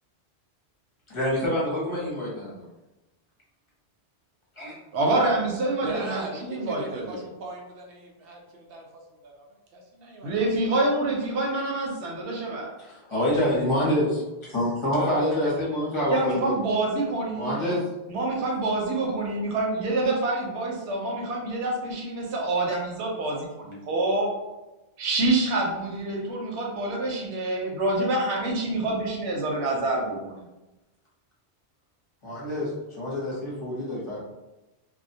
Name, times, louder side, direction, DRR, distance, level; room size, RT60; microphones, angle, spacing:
voice 1, 1.1-2.6 4.6-4.8 12.8-16.6 17.4-17.8 32.2-32.7 33.0-34.2, left 1 dB, 30° left, -7 dB, 0.8 m, -26 dB
voice 2, 4.9-7.2 10.2-12.7 16.1-17.6 18.1-24.3 25.0-30.5, right 2 dB, 90° right, -2 dB, 0.9 m, -27 dB
voice 3, 5.8-8.9 9.2-9.5 9.7-10.3 11.0-11.1 14.9-15.7, right 2 dB, 65° right, 0 dB, 0.7 m, -39 dB
2.2 x 2.2 x 2.6 m, 1.0 s
omnidirectional pair, 1.1 m